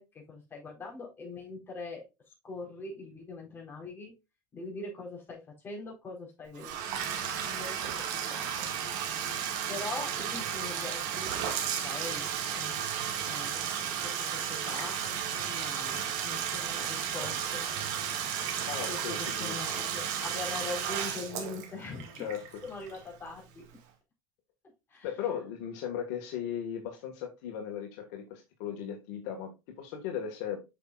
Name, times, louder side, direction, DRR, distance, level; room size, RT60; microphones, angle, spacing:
voice 1, 0.0-2.0 2.4-4.1 4.5-6.7 7.4-8.7 9.7-12.3 12.5-12.8 13.2-15.0 15.3-17.7 18.9-19.9 20.2-22.1 22.6-23.7 24.9-25.1, left 3 dB, 20° left, -2 dB, 4.3 m, -42 dB
Bathtub (filling or washing), 6.5-23.3, right 8 dB, 70° right, 2.0 m, -34 dB
voice 2, 18.7-19.6 22.2-22.6 25.0-30.6, left 9 dB, 70° left, 2 dB, 1.8 m, -37 dB
8.2 x 6.0 x 2.5 m, 0.24 s
supercardioid pair, 140°, 10 cm